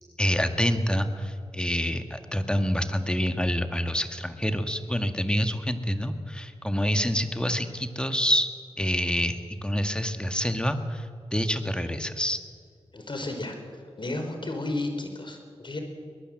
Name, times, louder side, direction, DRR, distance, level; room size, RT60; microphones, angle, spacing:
voice 1, 0.2-8.5 8.8-12.4, equal, 10° left, 8 dB, 1.8 m, -27 dB
voice 2, 12.9-15.8, left 2 dB, 50° left, 5 dB, 4.4 m, -33 dB
22.0 x 20.0 x 7.8 m, 2.1 s
cardioid pair, 55°, 11 cm